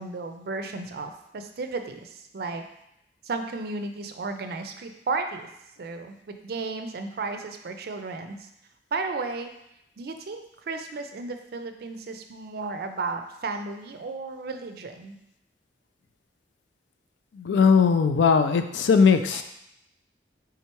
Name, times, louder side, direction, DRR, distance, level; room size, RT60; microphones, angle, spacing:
voice 1, 0.0-2.6 3.2-5.5 5.8-8.5 8.9-9.5 10.0-15.2 19.3-19.4, right 3 dB, 60° right, 7 dB, 0.4 m, -34 dB
voice 2, 17.3-19.4, left 5 dB, 85° left, 8 dB, 0.4 m, -19 dB
4.4 x 3.6 x 3.0 m, 0.81 s
head